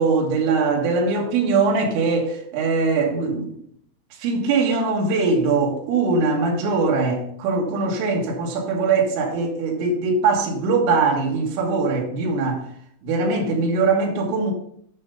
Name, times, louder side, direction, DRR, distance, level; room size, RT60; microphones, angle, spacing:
voice 1, 0.0-3.6 4.1-12.7 13.0-14.5, right 4 dB, 85° right, 4.2 m, -21 dB
9.7 x 6.8 x 3.9 m
omnidirectional pair, 5.7 m